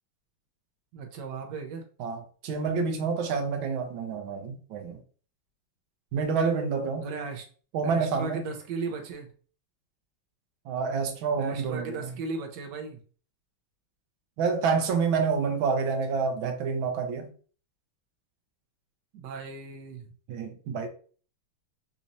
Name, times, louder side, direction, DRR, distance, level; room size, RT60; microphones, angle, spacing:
voice 1, 0.9-1.8 7.0-7.5 7.8-9.3 11.4-13.0 19.1-20.1, right 4 dB, 70° right, 1.3 m, -36 dB
voice 2, 2.0-5.0 6.1-7.1 7.7-8.5 10.7-12.1 14.4-17.3 20.3-20.9, right 5 dB, 85° right, 1.5 m, -28 dB
4.1 x 2.6 x 2.9 m
omnidirectional pair, 2.2 m